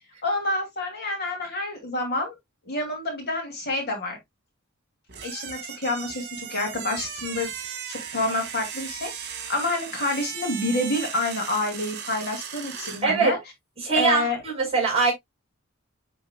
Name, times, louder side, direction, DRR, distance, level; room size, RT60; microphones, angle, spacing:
voice 1, 0.2-2.3 2.7-4.2 5.2-13.4 13.9-14.4, left 2 dB, 50° left, 2.8 m, -28 dB
sound 1, 5.1-13.1, right 7 dB, 55° right, 2.3 m, -37 dB
voice 2, 13.0-13.3 13.8-15.1, right 4 dB, 30° right, 4.5 m, -22 dB
8.9 x 4.5 x 2.3 m
head